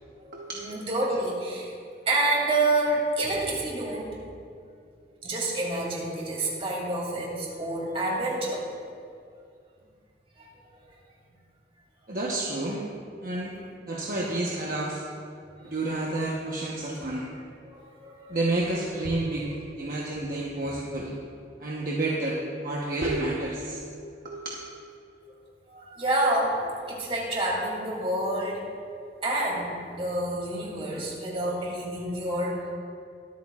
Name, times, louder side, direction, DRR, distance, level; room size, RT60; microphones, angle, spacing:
voice 1, 0.2-1.7 2.1-4.2 5.2-8.7 10.4-10.5 17.6-18.4 25.7-28.6 29.2-32.7, right 2 dB, 35° right, -3 dB, 2.7 m, -28 dB
voice 2, 12.1-12.9 13.2-13.5 13.9-15.0 15.6-17.3 18.3-21.1 21.6-23.8 24.2-24.5, right 2 dB, 50° right, -3 dB, 1.1 m, -30 dB
22.5 x 8.4 x 2.4 m, 2.4 s
head